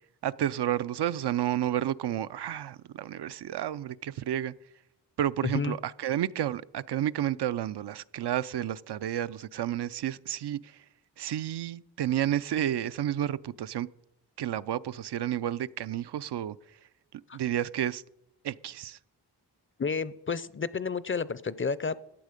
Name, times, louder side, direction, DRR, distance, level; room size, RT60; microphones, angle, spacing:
voice 1, 0.2-4.5 5.2-10.7 11.2-13.9 14.4-16.6 17.1-18.0 18.4-19.0, right 11 dB, 70° right, 0.5 m, -31 dB
voice 2, 5.4-5.8 17.3-17.4 19.8-22.0, left 5 dB, 30° left, 0.5 m, -31 dB
14.5 x 9.1 x 5.0 m
wide cardioid pair, 75°, 42 cm